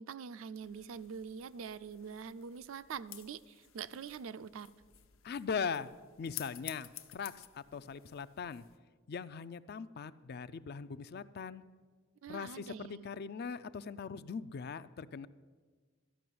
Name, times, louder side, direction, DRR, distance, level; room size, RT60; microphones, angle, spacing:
voice 1, 0.0-4.7 12.2-13.1, right 6 dB, 70° right, 15 dB, 0.4 m, -44 dB
sound 1, 0.6-8.8, left 13 dB, 70° left, 0.8 m, -52 dB
voice 2, 5.2-5.9 6.2-8.6 9.1-11.6 12.3-15.3, left 5 dB, 50° left, 15 dB, 0.4 m, -40 dB
13.5 x 6.0 x 9.3 m, 1.5 s
head